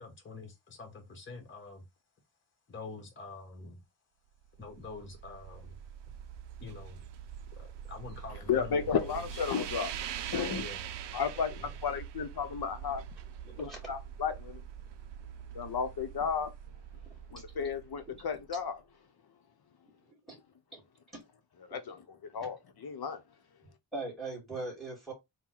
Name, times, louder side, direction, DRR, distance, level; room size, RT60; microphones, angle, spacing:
voice 1, 0.0-1.8 2.7-3.8 4.6-5.8 6.6-7.0 7.5-9.4 10.5-10.9 11.4-11.7, left 4 dB, 25° left, 1.1 m, -46 dB
sound 1, 4.5-18.6, right 9 dB, 65° right, 0.5 m, -44 dB
voice 2, 8.5-9.9 10.3-10.7 11.1-11.5 11.8-13.0 13.6-14.6 15.5-16.5 17.3-18.8 21.7-22.0 22.3-23.2, left 6 dB, 50° left, 0.9 m, -33 dB
voice 3, 13.4-13.8 18.1-18.2 20.1-20.4 20.7-20.8 21.1-21.2 21.7-21.8 22.4-22.5 23.9-25.1, right 2 dB, ahead, 2.1 m, -41 dB
3.9 x 2.3 x 4.5 m
wide cardioid pair, 130°, 47 cm